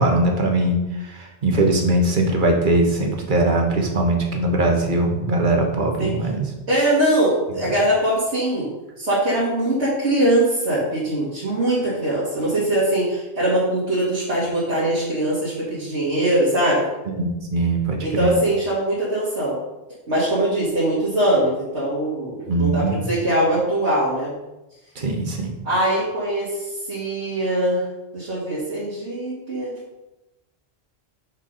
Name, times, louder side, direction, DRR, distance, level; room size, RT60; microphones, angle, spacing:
voice 1, 0.0-6.5 17.1-18.3 22.5-23.0 24.9-25.6, right 2 dB, 50° right, 2 dB, 1.4 m, -21 dB
voice 2, 6.7-8.7 9.0-16.9 18.0-19.6 20.1-24.3 25.6-27.8 28.1-29.8, right 1 dB, 75° right, -9 dB, 2.4 m, -22 dB
6.6 x 4.8 x 5.3 m, 1.0 s
omnidirectional pair, 1.1 m